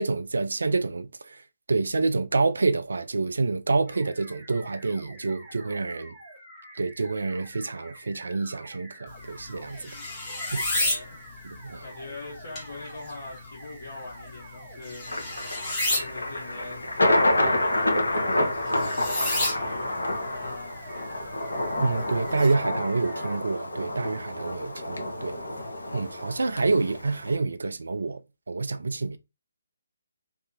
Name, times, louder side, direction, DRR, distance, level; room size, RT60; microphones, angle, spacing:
voice 1, 0.0-1.4 1.7-6.1 6.8-9.9 10.5-10.7 11.4-11.8 21.8-25.4 25.9-28.2 28.5-29.2, right 3 dB, 65° right, 0.3 m, -27 dB
sound 1, 3.9-23.4, right 1 dB, ahead, 1.2 m, -48 dB
sound 2, 9.1-22.5, left 2 dB, 15° left, 1.0 m, -34 dB
voice 2, 10.7-11.3 11.8-21.3, left 2 dB, 45° left, 1.1 m, -42 dB
Thunder, 15.1-27.4, left 1 dB, 70° left, 0.7 m, -28 dB
2.7 x 2.3 x 2.6 m
figure-of-eight pair, 145°, 0 cm